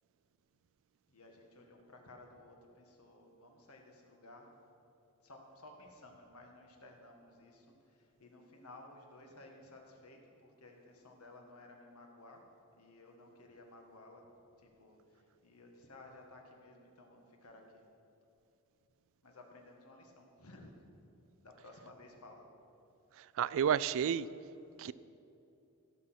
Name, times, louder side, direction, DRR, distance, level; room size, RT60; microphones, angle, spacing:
voice 1, 1.1-4.5 5.2-12.4 12.7-14.3 14.6-17.8 19.2-20.7 21.4-22.4, left 2 dB, 75° left, 2 dB, 1.6 m, -56 dB
voice 2, 23.2-24.3 24.8-24.9, right 8 dB, 60° right, 17 dB, 0.3 m, -31 dB
16.0 x 6.3 x 6.0 m, 2.8 s
head